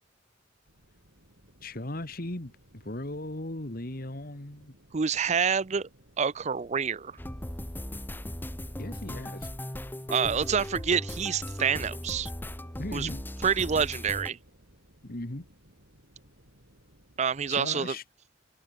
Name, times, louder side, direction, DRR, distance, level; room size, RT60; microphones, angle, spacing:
sound 1, 0.6-17.7, equal, 60° right, 7.4 m, -59 dB
voice 1, 1.6-4.7 8.8-9.5 12.8-13.3 15.0-15.5 17.5-18.0, left 1 dB, 50° left, 2.1 m, -37 dB
voice 2, 4.9-5.9 6.2-7.2 10.1-12.3 12.9-13.1 13.4-14.4 17.2-17.9, right 6 dB, 35° right, 0.5 m, -27 dB
sound 2, 7.2-14.3, left 1 dB, 10° left, 2.0 m, -37 dB
head